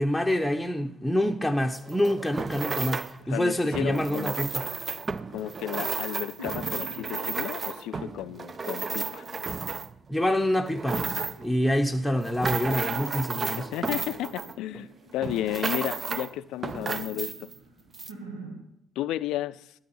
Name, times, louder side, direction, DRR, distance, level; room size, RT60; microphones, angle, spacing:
voice 1, 0.0-4.7 10.1-11.1 11.4-13.7, equal, ahead, 0.9 m, -26 dB
sound 1, 1.7-3.2 3.7-10.1 10.5-11.5 12.0-14.9 15.2-16.3 16.6-17.6 17.9-18.1, right 4 dB, 35° right, 0.5 m, -33 dB
voice 2, 3.3-4.4 5.3-9.3 13.4-14.9 15.1-17.5 19.0-19.7, left 13 dB, 65° left, 0.4 m, -33 dB
sound 2, 5.6-9.8 10.4-12.3 12.6-16.0 16.5-18.6, right 1 dB, 90° right, 1.2 m, -46 dB
12.5 x 8.4 x 5.6 m
figure-of-eight pair, 45°, 0 cm